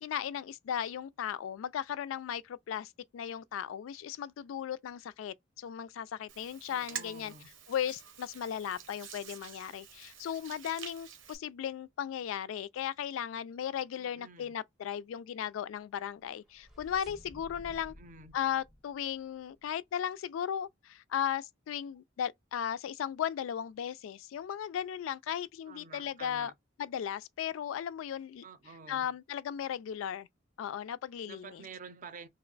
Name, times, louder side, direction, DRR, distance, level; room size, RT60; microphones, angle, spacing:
voice 1, 0.0-7.3 7.7-17.9 18.3-26.5 26.8-28.4 28.9-30.3 30.6-31.6, left 9 dB, 85° left, 0.3 m, -36 dB
Hands, 6.3-11.4, right 8 dB, 90° right, 0.9 m, -47 dB
voice 2, 6.7-7.5 13.9-14.5 17.7-18.3 25.7-26.5 28.4-29.1 31.2-32.3, right 5 dB, 45° right, 0.5 m, -50 dB
sound 1, 16.1-19.7, equal, ahead, 0.7 m, -54 dB
2.9 x 2.1 x 3.8 m
head